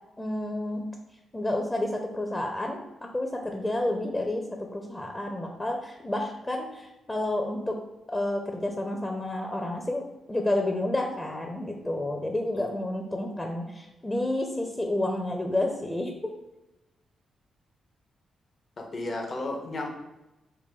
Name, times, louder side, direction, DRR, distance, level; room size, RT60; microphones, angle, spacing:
voice 1, 0.2-0.8 1.3-7.8 8.1-16.3, left 1 dB, 20° left, 2 dB, 0.6 m, -30 dB
voice 2, 18.8-19.9, left 2 dB, 50° left, 1 dB, 0.8 m, -33 dB
4.3 x 2.2 x 3.7 m, 0.97 s
supercardioid pair, 45°, 0 cm